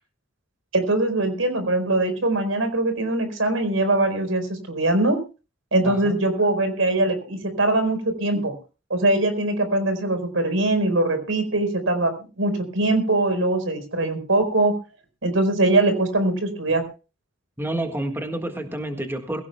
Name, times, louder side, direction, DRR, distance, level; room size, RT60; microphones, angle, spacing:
voice 1, 0.7-5.2 5.7-8.5 8.9-14.7 15.2-16.8, right 2 dB, 85° right, 8 dB, 4.6 m, -22 dB
voice 2, 5.8-6.2 8.3-8.4 17.6-19.4, right 1 dB, 10° right, 4 dB, 1.7 m, -29 dB
22.0 x 16.5 x 2.3 m, 0.33 s
head